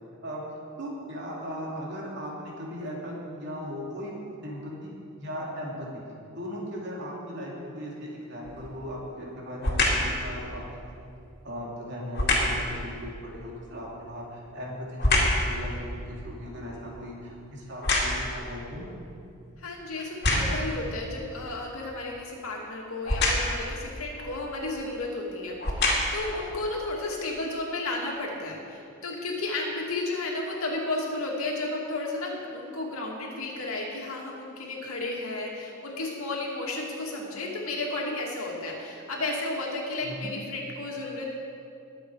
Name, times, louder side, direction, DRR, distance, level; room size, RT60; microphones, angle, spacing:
voice 1, 0.8-4.1 4.4-6.0 6.3-10.6 11.0-11.1 11.4-18.8 24.1-24.3 26.3-26.5 40.0-40.2, equal, 55° right, -4 dB, 3.1 m, -38 dB
sound 1, 8.4-8.8 9.6-10.1 12.1-12.6 14.0-15.5 15.9-18.4 19.1-19.2 20.0-20.7 23.0-23.6 24.7-24.8 25.5-26.3 26.9-27.0, left 2 dB, 50° left, 2.5 m, -26 dB
voice 2, 19.6-41.3, left 2 dB, 90° left, -2 dB, 2.6 m, -33 dB
20.5 x 8.1 x 4.8 m, 2.5 s
head